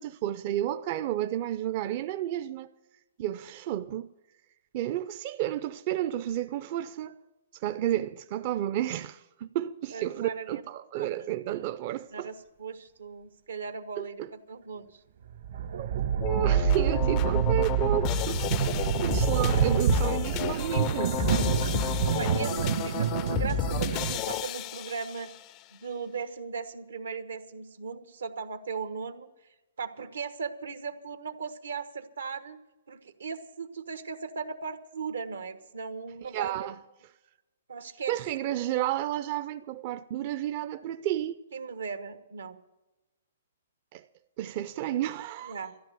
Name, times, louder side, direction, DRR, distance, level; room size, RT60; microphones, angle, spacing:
voice 1, 0.0-2.7 3.2-4.1 4.7-7.2 7.5-12.3 14.0-14.3 15.8-16.0 16.2-21.2 36.2-36.7 38.1-41.4 43.9-44.1 44.4-45.5, right 13 dB, 40° right, 0.4 m, -31 dB
voice 2, 9.9-10.6 10.9-11.6 12.1-15.0 22.0-25.3 25.7-29.3 29.8-32.6 32.9-36.7 37.7-38.2 41.5-42.6 45.4-45.7, right 5 dB, 85° right, 1.2 m, -38 dB
sound 1, 15.3-24.2, right 8 dB, 65° right, 1.2 m, -27 dB
sound 2, 16.2-25.4, left 13 dB, 30° left, 0.4 m, -32 dB
13.5 x 11.0 x 6.7 m
hypercardioid pair, 145°, 0 cm